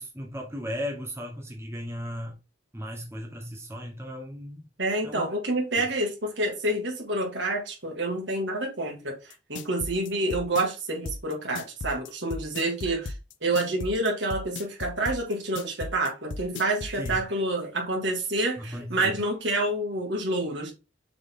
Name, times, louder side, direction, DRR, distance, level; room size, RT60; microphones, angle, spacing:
voice 1, 0.0-2.4 2.7-4.6 5.0-5.2 5.8-5.9 17.0-17.2 18.6-19.2, equal, 15° right, 1.2 m, -36 dB
voice 2, 4.8-13.1 13.4-20.7, right 2 dB, 70° right, 2.2 m, -28 dB
sound 1, 9.3-17.2, left 3 dB, 75° left, 0.6 m, -36 dB
6.9 x 3.9 x 3.8 m
head